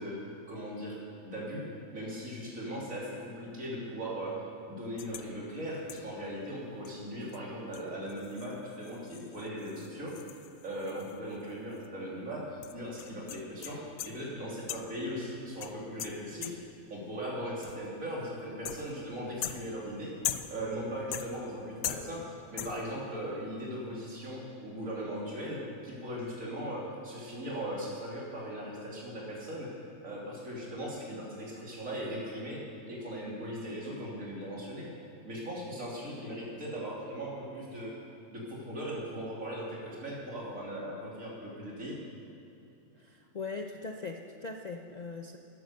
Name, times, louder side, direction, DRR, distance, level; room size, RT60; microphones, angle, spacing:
voice 1, 0.0-4.4 4.7-10.2 10.6-16.5 16.9-20.1 20.5-29.7 30.0-32.6 32.9-34.9 35.2-37.9 38.3-42.0, equal, 70° right, -5 dB, 3.4 m, -39 dB
sound 1, 5.0-5.3 5.9-6.2 6.8-6.9 7.3-7.4 7.7-11.5 11.8-11.9 12.6-14.3 14.7-15.1 15.6-16.8 17.6-18.0 18.6-19.1 19.4-20.7 21.1-21.6 21.8-22.3 22.6-23.0, left 11 dB, 85° left, 1.1 m, -41 dB
voice 2, 42.9-45.4, left 4 dB, 45° left, 3 dB, 0.5 m, -40 dB
13.5 x 10.5 x 6.6 m, 2.9 s
omnidirectional pair, 1.5 m